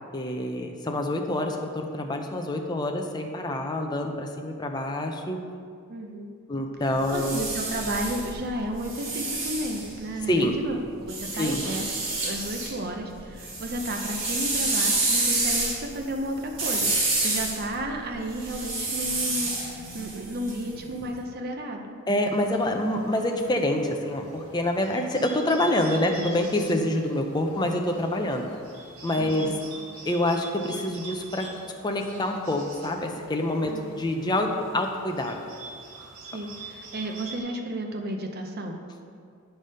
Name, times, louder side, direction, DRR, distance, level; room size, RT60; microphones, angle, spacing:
voice 1, 0.1-5.4 6.5-7.4 10.3-10.5 11.3-11.6 22.1-28.5 29.0-29.5 30.1-31.5 31.8-35.4, left 1 dB, 20° left, 3 dB, 0.5 m, -26 dB
voice 2, 5.9-6.3 7.1-11.9 12.2-22.0 29.2-29.6 33.6-34.1 36.3-38.8, right 1 dB, 50° right, 3 dB, 0.6 m, -33 dB
sound 1, 6.9-10.4 11.1-12.7 13.1-21.0, right 2 dB, 65° right, 1.7 m, -29 dB
Bird, 22.2-37.4, right 3 dB, 90° right, 1.2 m, -45 dB
9.0 x 3.4 x 5.4 m, 2.2 s
head